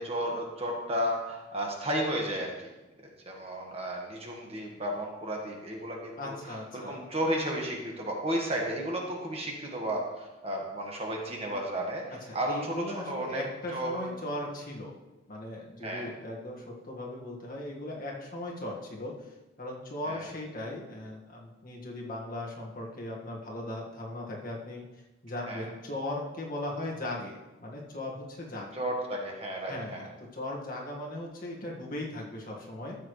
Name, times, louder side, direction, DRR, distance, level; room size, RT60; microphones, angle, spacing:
voice 1, 0.0-2.5 3.2-6.4 6.7-12.0 12.3-13.4 13.7-14.1 15.8-16.1 20.0-20.3 25.4-25.7 28.7-30.0, right 1 dB, 30° right, 0 dB, 1.6 m, -33 dB
voice 2, 6.2-7.1 12.3-14.9 15.3-24.9 25.2-28.8 29.7-33.0, left 1 dB, 45° left, -3 dB, 1.9 m, -38 dB
13.0 x 8.0 x 3.3 m, 1.1 s
head